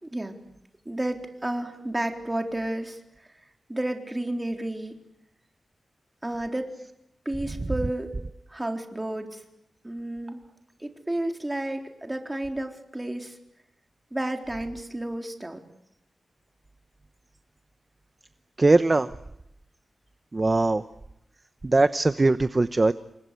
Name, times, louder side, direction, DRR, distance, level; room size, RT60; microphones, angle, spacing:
voice 1, 0.0-0.4 0.9-3.0 3.7-5.0 6.2-6.7 7.3-8.1 8.5-9.4 9.8-10.4 10.8-13.4 14.1-15.6, right 1 dB, 15° right, 4 dB, 4.0 m, -31 dB
voice 2, 18.6-19.1 20.3-20.8 21.6-22.9, right 2 dB, 35° right, 12 dB, 1.0 m, -20 dB
29.0 x 24.0 x 8.4 m, 0.82 s
wide cardioid pair, 80°, 0 cm